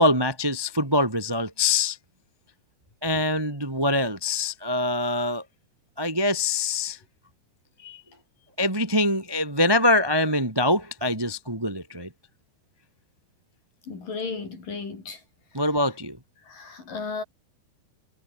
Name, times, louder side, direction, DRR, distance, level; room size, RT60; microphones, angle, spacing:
voice 1, 0.0-2.0 3.0-5.4 6.0-7.0 7.8-8.0 8.6-12.1 15.5-16.2, left 1 dB, 10° right, 1.9 m, -24 dB
voice 2, 13.9-15.2 16.5-17.2, left 4 dB, 55° left, 7.5 m, -34 dB
omnidirectional pair, 4.7 m